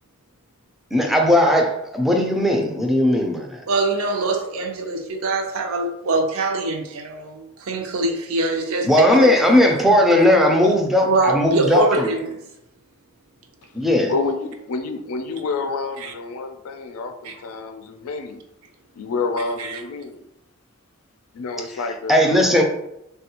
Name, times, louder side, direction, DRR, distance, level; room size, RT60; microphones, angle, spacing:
voice 1, 0.9-3.6 8.8-12.1 13.7-14.1 21.7-21.8 22.1-22.6, left 1 dB, ahead, 1 dB, 0.4 m, -17 dB
voice 2, 3.7-8.9 9.2-9.3 11.0-12.4 16.0-16.1 17.2-17.4 19.6-19.8, right 2 dB, 70° right, 4 dB, 0.5 m, -23 dB
voice 3, 14.1-18.4 19.0-20.2 21.3-22.6, left 4 dB, 90° left, 6 dB, 0.4 m, -28 dB
3.3 x 2.3 x 2.8 m, 0.84 s
head